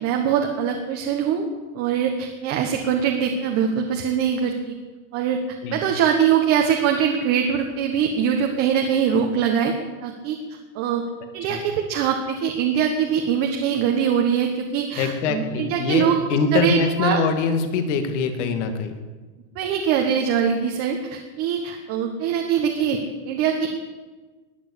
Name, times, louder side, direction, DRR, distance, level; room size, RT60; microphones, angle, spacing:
voice 1, 0.0-1.5 1.7-4.7 5.1-5.4 5.7-9.7 10.0-10.4 10.7-11.0 11.3-16.2 16.5-17.2 19.5-23.0 23.2-23.7, right 8 dB, 35° right, 2 dB, 1.4 m, -22 dB
voice 2, 15.0-19.0, left 5 dB, 55° left, 7 dB, 2.4 m, -23 dB
20.5 x 7.5 x 8.5 m, 1.3 s
supercardioid pair, 165°, 42 cm